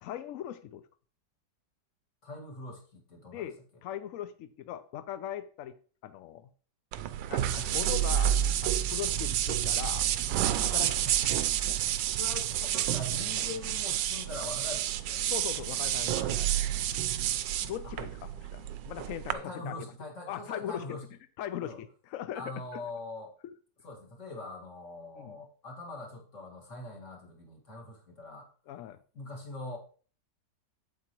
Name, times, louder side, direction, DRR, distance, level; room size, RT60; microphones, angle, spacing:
voice 1, 0.0-0.8 3.3-3.5 3.8-5.7 6.0-6.5 7.3-10.1 10.6-11.2 15.3-16.5 17.6-19.7 20.3-20.8 21.4-22.8 23.4-23.5 25.2-25.4 28.7-29.0, left 11 dB, 75° left, 0.7 m, -40 dB
voice 2, 2.2-3.5 7.4-7.9 12.1-15.2 16.1-16.3 17.8-17.9 19.3-21.1 21.6-21.8 22.3-23.3 23.8-28.5 29.1-29.8, left 2 dB, 45° left, 2.2 m, -43 dB
sound 1, 6.9-19.3, right 11 dB, 90° right, 1.3 m, -29 dB
8.1 x 7.8 x 3.0 m
omnidirectional pair, 1.9 m